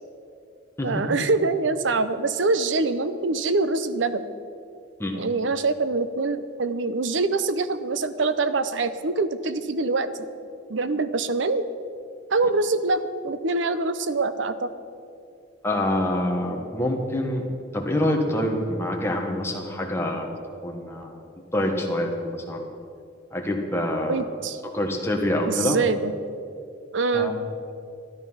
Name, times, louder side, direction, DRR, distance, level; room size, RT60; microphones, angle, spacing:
voice 1, 0.8-4.3 5.1-10.1 10.7-11.7 12.3-14.7 24.0-24.6 25.4-26.1 26.9-27.3, right 3 dB, 80° right, 12 dB, 0.7 m, -24 dB
voice 2, 15.6-17.4 17.7-20.3 20.6-21.2 21.5-22.7 23.3-24.2 24.7-25.8 27.1-27.3, left 1 dB, 15° left, 1 dB, 1.5 m, -26 dB
13.5 x 12.0 x 5.6 m, 2.4 s
head